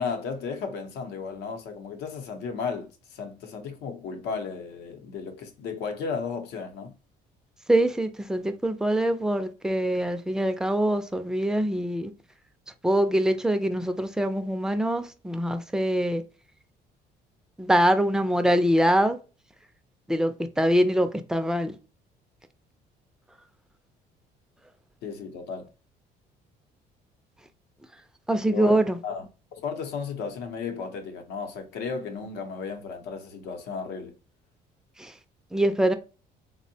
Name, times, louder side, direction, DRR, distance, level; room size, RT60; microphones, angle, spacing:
voice 1, 0.0-6.9 25.0-25.7 28.5-29.3 29.5-34.1, left 5 dB, 85° left, 0.7 m, -34 dB
voice 2, 7.7-12.1 12.8-16.2 17.6-19.2 20.1-21.8 28.3-29.0 35.0-35.1 35.5-35.9, right 1 dB, 5° right, 0.3 m, -24 dB
3.5 x 2.1 x 2.6 m
cardioid pair, 110°, 17 cm